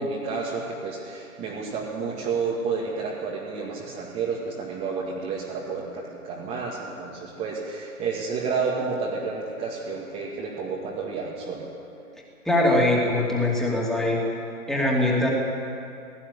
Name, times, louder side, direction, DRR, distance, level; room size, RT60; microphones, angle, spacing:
voice 1, 0.0-11.7, right 4 dB, 15° right, -5 dB, 2.1 m, -30 dB
voice 2, 12.4-14.4 14.7-15.3, left 1 dB, ahead, -3 dB, 2.8 m, -22 dB
18.0 x 15.5 x 9.8 m, 2.7 s
hypercardioid pair, 150°, 44 cm